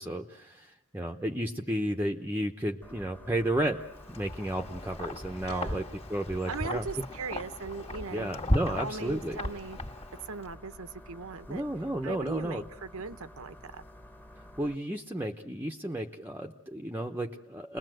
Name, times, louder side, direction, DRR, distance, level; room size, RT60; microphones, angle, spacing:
voice 1, 0.0-5.8 6.1-6.8 8.1-9.4 11.5-12.6 14.6-17.8, right 1 dB, 10° right, 3 dB, 0.9 m, -33 dB
sound 1, 2.8-14.8, equal, 10° left, 1.3 m, -50 dB
Wind, 4.0-10.5, left 1 dB, 30° left, 2.1 m, -36 dB
voice 2, 5.5-5.8 6.5-8.4 8.7-9.8 10.2-11.6 12.0-13.8, right 4 dB, 70° right, 13 dB, 1.0 m, -39 dB
29.0 x 21.0 x 7.8 m, 0.90 s
head